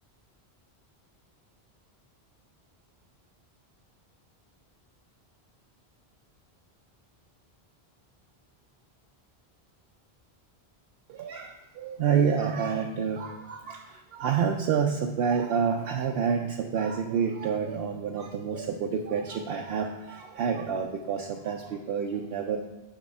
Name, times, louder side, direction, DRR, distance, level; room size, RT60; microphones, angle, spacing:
voice 1, 11.1-22.6, right 6 dB, 70° right, 3 dB, 0.8 m, -28 dB
8.9 x 3.7 x 5.3 m, 1.1 s
omnidirectional pair, 1.1 m